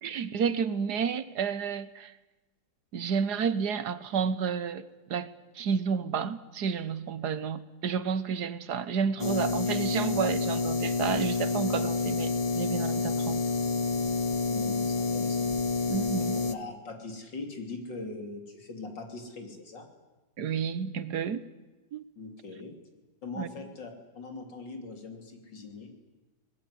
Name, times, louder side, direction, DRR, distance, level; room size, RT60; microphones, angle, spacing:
voice 1, 0.0-2.1 2.9-5.3 5.5-13.4 15.9-16.4 20.4-21.4 21.9-22.1 23.4-23.7, right 6 dB, 65° right, 14 dB, 1.5 m, -31 dB
sound 1, 9.2-16.5, left 4 dB, 30° left, 0.7 m, -28 dB
voice 2, 14.5-15.5 16.5-19.9 22.2-22.7 23.2-25.9, left 3 dB, 80° left, 4 dB, 3.8 m, -41 dB
23.0 x 19.5 x 9.8 m, 1.1 s
omnidirectional pair, 1.9 m